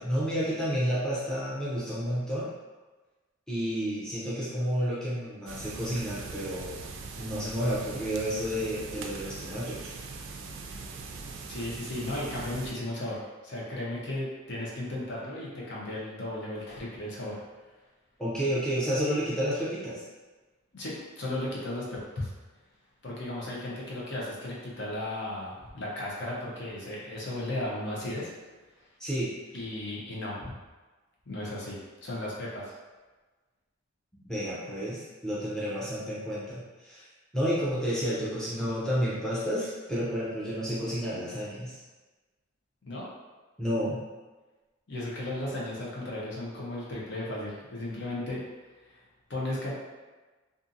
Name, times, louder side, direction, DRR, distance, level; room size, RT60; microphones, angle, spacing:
voice 1, 0.0-2.5 3.5-6.8 7.2-9.9 11.3-11.4 18.2-20.0 29.0-29.4 34.2-37.1 37.3-41.8 43.6-44.0, equal, 5° left, -9 dB, 0.5 m, -31 dB
sound 1, 5.5-12.7, right 4 dB, 65° right, 0.3 m, -41 dB
voice 2, 11.5-17.4 20.7-22.3 23.0-28.3 29.5-30.5 31.3-32.7 42.8-43.0 44.9-48.4 48.9-49.0 49.3-49.8, left 1 dB, 60° left, -5 dB, 0.7 m, -35 dB
2.6 x 2.5 x 2.5 m, 1.3 s
head